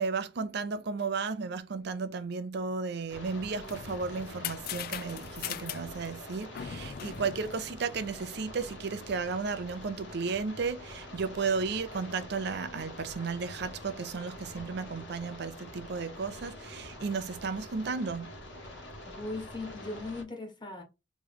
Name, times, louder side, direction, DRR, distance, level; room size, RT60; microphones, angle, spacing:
voice 1, 0.0-18.5 18.8-19.1, right 4 dB, 65° right, 0.5 m, -34 dB
sound 1, 3.1-20.2, left 1 dB, 85° left, 1.4 m, -46 dB
sound 2, 3.4-8.4, left 9 dB, 55° left, 0.4 m, -41 dB
voice 2, 19.0-20.8, left 2 dB, 25° left, 1.5 m, -39 dB
3.2 x 3.0 x 3.7 m
head